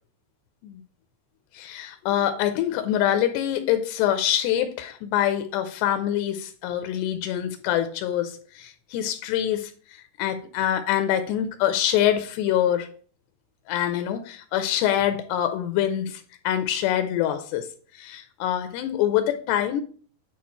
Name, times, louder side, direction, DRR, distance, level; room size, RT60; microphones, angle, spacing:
voice 1, 1.5-9.7 10.2-12.9 13.7-17.7 18.0-19.8, left 11 dB, 85° left, 9 dB, 2.7 m, -25 dB
10.5 x 4.4 x 3.0 m, 0.43 s
omnidirectional pair, 5.0 m